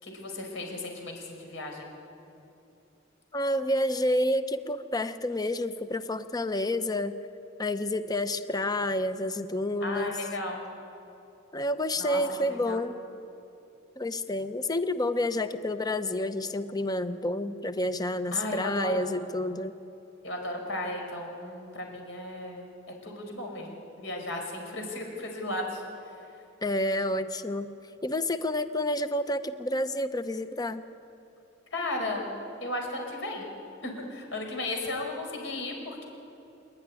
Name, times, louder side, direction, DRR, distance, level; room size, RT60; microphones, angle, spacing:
voice 1, 0.0-1.9 9.8-10.6 12.0-12.8 18.3-19.1 20.2-22.7 23.0-25.8 31.7-32.3 32.6-33.5 33.8-36.0, left 2 dB, 70° left, 1 dB, 5.4 m, -35 dB
voice 2, 3.3-7.2 7.6-10.2 11.5-13.0 14.0-19.7 26.6-27.7 28.0-30.8, left 1 dB, 20° left, 11 dB, 0.8 m, -29 dB
26.5 x 11.5 x 9.9 m, 2.9 s
head